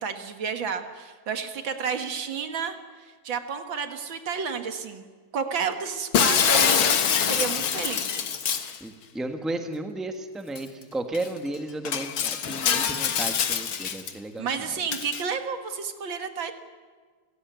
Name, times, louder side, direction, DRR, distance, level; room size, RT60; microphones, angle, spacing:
voice 1, 0.0-5.0 5.3-8.3 14.4-16.5, right 6 dB, 70° right, 7 dB, 2.2 m, -31 dB
Shatter, 6.1-8.8 10.6-10.7 11.1-11.3 11.9-14.1 14.9-15.2, left 8 dB, 75° left, 2.2 m, -24 dB
voice 2, 8.8-14.8, right 2 dB, ahead, 6 dB, 1.4 m, -34 dB
30.0 x 16.5 x 9.4 m, 1.6 s
omnidirectional pair, 2.3 m